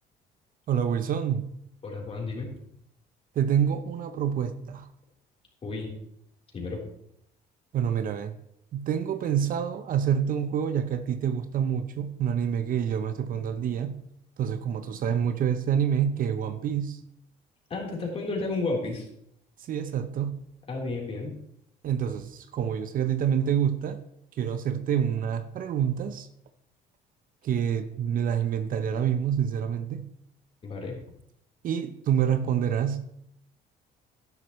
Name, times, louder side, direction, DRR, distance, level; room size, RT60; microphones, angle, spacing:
voice 1, 0.7-1.6 3.4-4.9 7.7-8.4 8.7-14.0 14.4-17.0 19.6-20.4 21.8-24.0 24.4-26.3 27.4-30.1 31.6-33.0, right 8 dB, 55° right, 0.8 m, -27 dB
voice 2, 1.8-2.5 5.6-5.9 6.5-6.8 17.7-19.1 20.7-21.3 30.6-31.0, left 3 dB, 35° left, 3.9 m, -32 dB
12.0 x 11.0 x 3.2 m
cardioid pair, 110°, 17 cm